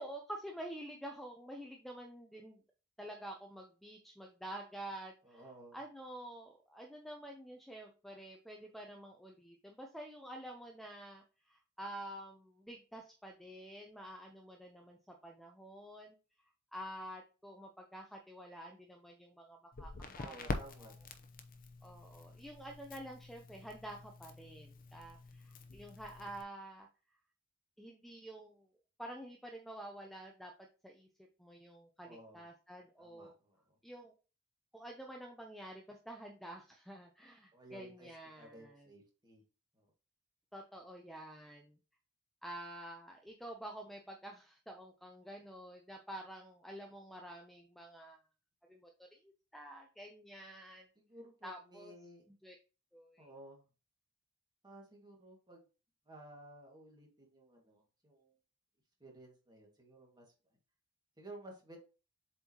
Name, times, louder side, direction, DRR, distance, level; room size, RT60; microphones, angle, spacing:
voice 1, 0.0-2.6 3.0-5.4 5.7-16.2 16.7-20.5 21.8-26.9 27.8-28.7 29.0-30.5 30.8-31.1 31.4-33.3 33.8-34.1 34.7-38.9 40.5-41.7 42.4-48.2 48.7-50.9 51.4-51.9 52.4-52.5 52.9-53.3, right 1 dB, ahead, 2 dB, 0.6 m, -49 dB
voice 2, 5.2-5.8 20.2-21.2 32.0-32.5 33.0-33.6 37.5-39.4 39.7-39.9 51.0-52.2 53.2-53.7 54.6-55.7 56.1-58.4 59.0-60.2 61.2-61.8, right 1 dB, 20° right, -1 dB, 1.9 m, -55 dB
Crackle, 19.7-26.4, left 2 dB, 45° left, 0.8 m, -46 dB
7.5 x 4.4 x 2.9 m, 0.34 s
head